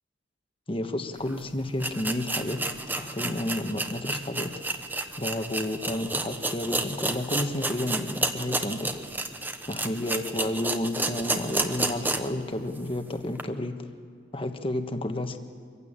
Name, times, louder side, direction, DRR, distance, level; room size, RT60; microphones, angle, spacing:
voice 1, 0.7-4.5 5.2-8.9 9.7-13.9 14.3-15.4, left 1 dB, 30° left, 7 dB, 1.3 m, -31 dB
sound 1, 1.3-1.4 1.8-12.4 12.8-12.9 13.4-13.5, right 2 dB, 10° right, 1.0 m, -31 dB
24.5 x 15.5 x 8.8 m, 2.3 s
head